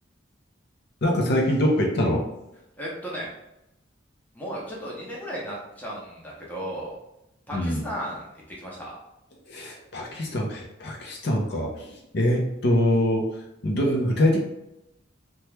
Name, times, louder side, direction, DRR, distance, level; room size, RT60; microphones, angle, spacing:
voice 1, 1.0-2.2 7.5-7.8 9.5-13.3 13.6-14.4, left 1 dB, 55° left, 0 dB, 0.6 m, -24 dB
voice 2, 2.8-3.3 4.3-7.0 7.5-9.0, equal, 10° left, -5 dB, 0.7 m, -35 dB
2.9 x 2.2 x 3.3 m, 0.87 s
head